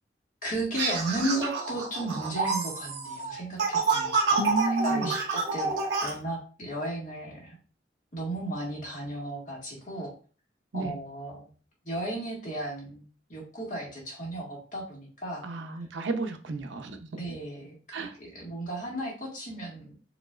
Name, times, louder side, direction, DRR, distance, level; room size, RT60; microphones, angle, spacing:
voice 1, 0.4-4.5 4.8-5.7 6.0-7.6 8.1-10.1 10.7-11.5 11.8-15.5 15.7-15.9 17.1-19.9, right 1 dB, 45° left, -3 dB, 1.8 m, -35 dB
sound 1, 0.7-6.1, right 4 dB, 65° right, 1.2 m, -28 dB
voice 2, 4.4-5.1 10.7-10.9 15.4-17.2 17.9-18.1, right 3 dB, 85° right, 6 dB, 0.6 m, -31 dB
5.0 x 3.1 x 2.4 m, 0.38 s
head